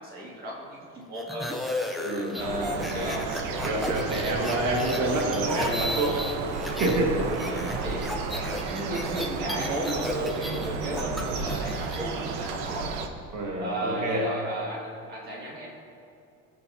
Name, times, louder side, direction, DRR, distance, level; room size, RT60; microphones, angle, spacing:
voice 1, 0.0-1.5 2.1-3.3 7.2-12.9 13.6-15.7, right 1 dB, 30° right, -4 dB, 2.1 m, -34 dB
sound 1, 1.2-7.0 7.3-12.0, left 1 dB, ahead, 0.5 m, -34 dB
voice 2, 2.0-2.4 3.6-6.3 6.8-7.3 13.3-14.3, right 2 dB, 65° right, -1 dB, 1.5 m, -27 dB
sound 2, 2.4-13.1, right 4 dB, 90° right, 1.0 m, -32 dB
18.5 x 7.8 x 2.6 m, 2.6 s
cardioid pair, 175°, 30 cm